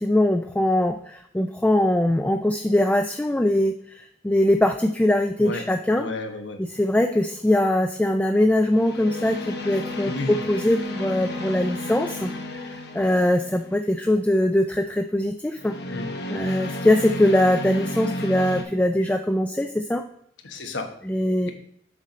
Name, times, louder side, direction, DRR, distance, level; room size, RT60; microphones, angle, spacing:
voice 1, 0.0-6.1 6.7-16.0 16.3-20.0 21.1-21.5, left 1 dB, 10° left, 6 dB, 0.3 m, -22 dB
voice 2, 6.0-6.6 10.0-10.4 15.9-16.1 20.4-20.9 21.4-21.5, left 2 dB, 85° left, 4 dB, 1.2 m, -32 dB
sound 1, 6.7-7.1 8.7-13.8 15.6-18.6, left 1 dB, 60° left, 1.0 m, -32 dB
7.4 x 4.3 x 5.1 m, 0.67 s
head